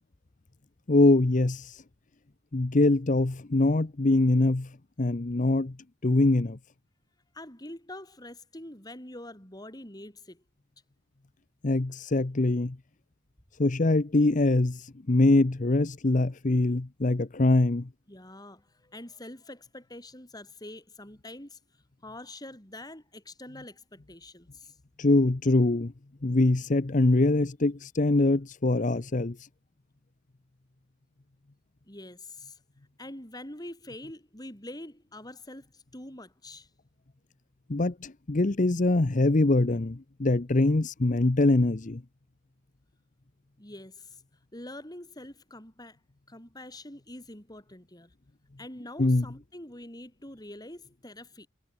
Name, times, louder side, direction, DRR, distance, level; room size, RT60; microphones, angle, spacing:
voice 1, 0.9-1.7 2.5-4.7 5.0-5.8 6.0-6.6 11.6-12.8 13.6-14.8 15.1-17.9 25.0-25.9 26.2-29.4 37.7-42.0 49.0-49.2, left 2 dB, 40° left, 0.8 m, -23 dB
voice 2, 7.3-10.4 18.1-21.6 22.0-24.7 31.9-32.6 33.0-36.7 43.6-44.2 44.5-46.0 46.3-48.1 48.6-51.5, left 1 dB, 20° left, 6.7 m, -45 dB
head